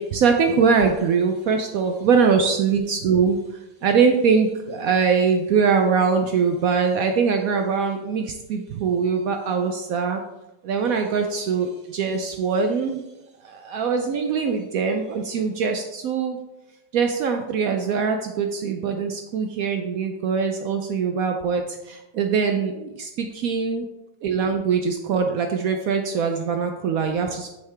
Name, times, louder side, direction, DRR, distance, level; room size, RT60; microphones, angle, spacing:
voice 1, 0.0-3.4 3.8-10.2 10.6-13.0 13.4-16.4 16.9-21.6 21.9-23.9 24.2-27.5, right 5 dB, 75° right, 5 dB, 0.8 m, -22 dB
5.7 x 5.7 x 3.3 m, 0.97 s
omnidirectional pair, 1.9 m